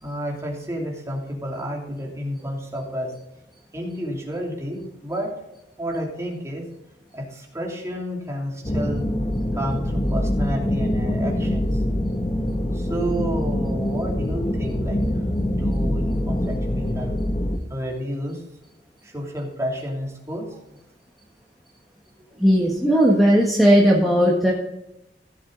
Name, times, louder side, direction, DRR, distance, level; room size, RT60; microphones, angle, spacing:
voice 1, 0.0-3.1 3.7-5.3 5.8-6.6 7.1-9.1 9.5-11.8 12.7-15.0 15.3-17.1 17.7-18.4 19.0-20.8, equal, 15° right, -2 dB, 2.8 m, -30 dB
sound 1, 8.6-17.6, left 1 dB, 25° left, 0.9 m, -24 dB
voice 2, 22.4-24.5, equal, ahead, -5 dB, 1.6 m, -16 dB
16.0 x 7.6 x 3.9 m, 0.89 s
head